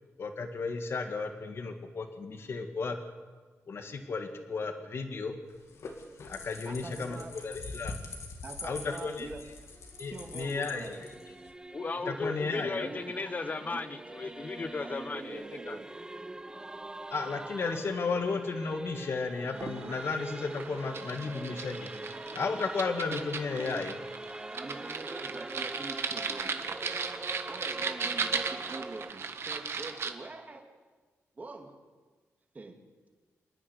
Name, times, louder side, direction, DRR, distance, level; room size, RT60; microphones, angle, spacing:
voice 1, 0.2-3.0 3.7-5.3 6.3-8.0 8.6-9.3 10.0-11.0 12.1-12.9 17.1-21.9 22.3-24.0, left 4 dB, 55° left, 5 dB, 2.1 m, -34 dB
sound 1, 5.5-11.5, left 3 dB, 70° left, 2.7 m, -44 dB
voice 2, 6.6-7.4 8.4-9.4 10.1-11.0 12.0-13.0 13.6-13.8 14.8-15.9 23.1-23.2 24.6-26.7 27.5-30.6 31.4-31.8 32.5-32.8, right 3 dB, 30° right, 3 dB, 2.7 m, -44 dB
Singing / Musical instrument, 9.7-29.1, right 2 dB, 15° right, 0.8 m, -44 dB
voice 3, 11.7-15.8, left 3 dB, 35° left, 11 dB, 0.9 m, -36 dB
sound 2, 19.5-30.1, right 5 dB, 55° right, 1.5 m, -37 dB
27.0 x 10.0 x 9.8 m, 1.4 s
wide cardioid pair, 120°, 5 cm